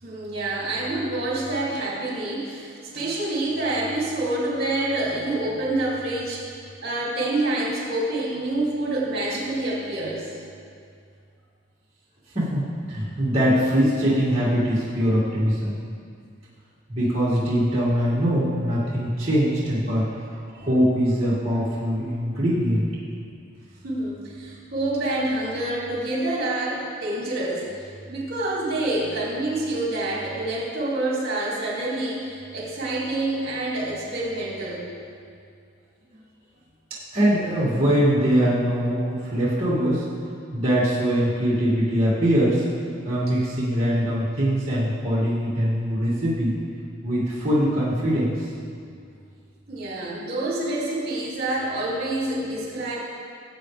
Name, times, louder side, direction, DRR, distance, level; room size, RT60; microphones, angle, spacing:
voice 1, 0.0-10.3 20.5-20.7 23.8-34.8 49.7-52.9, right 2 dB, 50° right, -6 dB, 2.8 m, -27 dB
voice 2, 12.3-15.8 16.9-22.9 37.1-40.1 40.5-42.6 43.0-46.6 47.0-48.5, equal, 30° right, -11 dB, 2.3 m, -22 dB
18.5 x 8.1 x 3.4 m, 2.3 s
head